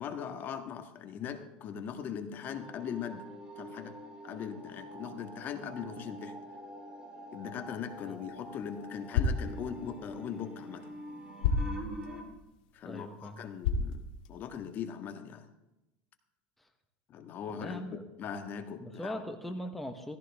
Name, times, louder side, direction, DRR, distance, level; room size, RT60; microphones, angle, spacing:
voice 1, 0.0-3.2 3.6-4.0 4.2-6.3 7.3-10.9 12.7-15.5 17.1-17.8 18.2-19.2, left 8 dB, 40° left, 7 dB, 1.7 m, -40 dB
sound 1, 2.5-12.2, equal, 20° right, 3.8 m, -46 dB
sound 2, 7.9-14.8, left 4 dB, 80° left, 2.2 m, -36 dB
voice 2, 12.8-13.5 16.6-16.7 17.5-18.0 18.8-20.2, equal, 5° left, 5 dB, 1.3 m, -40 dB
16.5 x 15.5 x 3.6 m, 0.95 s
supercardioid pair, 120°, 5 cm